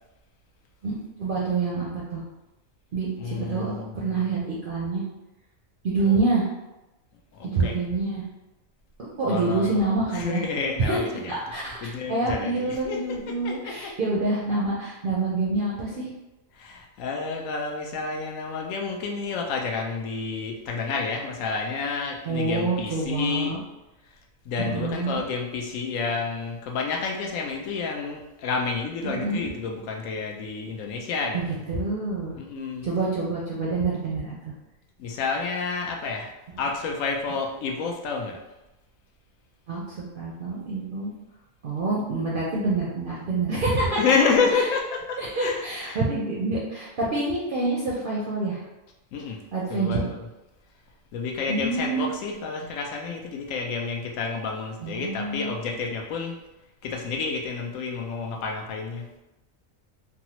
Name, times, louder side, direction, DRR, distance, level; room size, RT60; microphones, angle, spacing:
voice 1, 0.8-2.2 2.9-5.0 5.8-6.5 7.4-8.2 9.0-10.4 10.9-11.0 11.3-11.8 12.1-16.1 22.2-23.6 24.6-25.2 29.0-29.4 31.3-32.4 32.8-34.4 39.7-41.1 41.6-44.0 44.5-44.6 45.2-48.6 49.5-50.0 51.5-52.1 54.8-55.6, right 3 dB, 60° right, -5 dB, 0.6 m, -27 dB
voice 2, 3.1-4.2 6.0-6.3 7.3-7.8 9.3-13.9 16.5-23.6 24.4-31.6 32.4-32.9 35.0-36.3 36.6-38.4 43.9-46.0 49.1-49.4 49.7-50.3 51.1-56.3 56.8-59.1, left 4 dB, 80° left, 1 dB, 1.0 m, -29 dB
3.4 x 2.0 x 2.8 m, 0.99 s
omnidirectional pair, 1.4 m